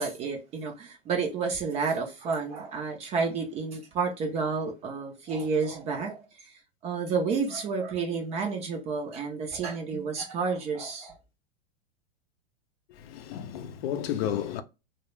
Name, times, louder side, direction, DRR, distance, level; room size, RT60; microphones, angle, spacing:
voice 1, 0.0-6.5 6.8-11.2, right 5 dB, 20° right, 0.4 m, -30 dB
voice 2, 13.0-14.6, left 10 dB, 65° left, 0.5 m, -32 dB
2.2 x 2.0 x 3.0 m
hypercardioid pair, 130°, 33 cm